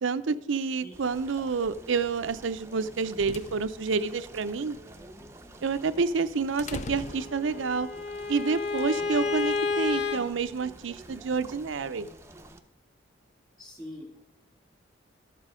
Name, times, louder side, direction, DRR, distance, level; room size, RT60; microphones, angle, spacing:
voice 1, 0.0-4.8 5.6-7.9 8.3-12.1, right 4 dB, 85° right, 11 dB, 0.6 m, -29 dB
sound 1, 0.9-12.6, right 2 dB, 15° right, 0.6 m, -49 dB
sound 2, 2.7-8.0, left 3 dB, 40° left, 0.4 m, -43 dB
Bowed string instrument, 7.1-10.2, left 4 dB, 60° left, 0.7 m, -30 dB
voice 2, 8.9-9.3 13.6-14.2, left 1 dB, 20° left, 0 dB, 2.6 m, -44 dB
12.0 x 7.5 x 5.0 m, 0.81 s
head